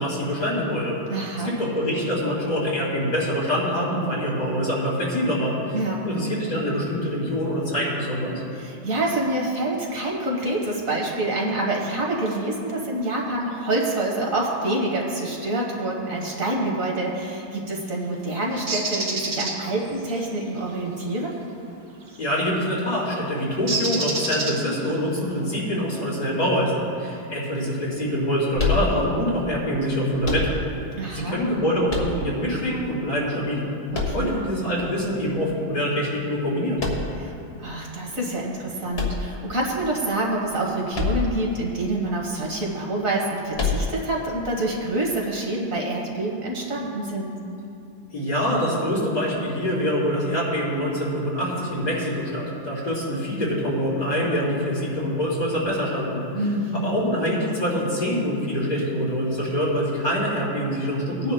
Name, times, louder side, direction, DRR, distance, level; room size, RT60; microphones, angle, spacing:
voice 1, 0.0-1.0 1.4-5.8 6.0-8.4 22.2-26.7 27.0-30.6 31.1-33.7 34.1-36.8 48.1-56.2 56.7-61.3, equal, 80° left, -6 dB, 3.6 m, -25 dB
voice 2, 1.1-1.5 5.7-6.0 8.5-21.3 31.0-31.4 33.9-34.3 37.2-47.3 56.3-57.0, right 1 dB, 50° right, -1 dB, 1.7 m, -27 dB
Bird, 18.7-19.5 22.1-22.4 23.7-24.9, right 3 dB, 70° right, 2.6 m, -27 dB
sound 1, 28.5-29.3 30.2-30.9 31.9-32.6 33.9-34.7 36.8-37.3 38.9-39.8 40.9-41.5 41.8-41.9 43.5-44.2, left 3 dB, 40° left, 1.4 m, -26 dB
19.5 x 9.8 x 2.2 m, 2.6 s
omnidirectional pair, 1.9 m